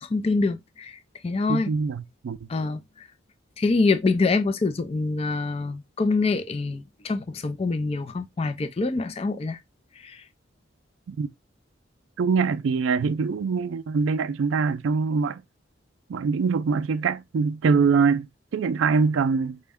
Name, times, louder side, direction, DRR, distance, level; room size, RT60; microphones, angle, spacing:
voice 1, 0.0-1.7 2.5-2.8 3.6-9.6 10.0-10.2, left 3 dB, 30° left, 0.3 m, -25 dB
voice 2, 1.5-2.4 11.1-11.3 12.2-15.4 16.1-19.6, right 5 dB, 75° right, 0.4 m, -23 dB
5.1 x 2.2 x 3.5 m
head